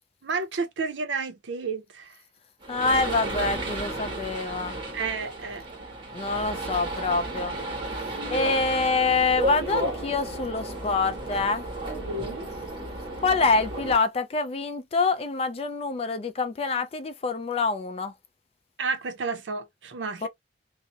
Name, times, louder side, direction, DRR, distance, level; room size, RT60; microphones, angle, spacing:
voice 1, 0.2-2.1 4.9-5.6 12.0-12.5 18.8-20.3, right 4 dB, 80° right, 0.5 m, -31 dB
sound 1, 2.6-14.0, right 2 dB, 30° right, 1.3 m, -33 dB
voice 2, 2.7-4.8 6.1-7.5 8.3-11.7 13.2-18.1 20.2-20.3, left 3 dB, 35° left, 0.3 m, -26 dB
2.7 x 2.0 x 2.3 m
head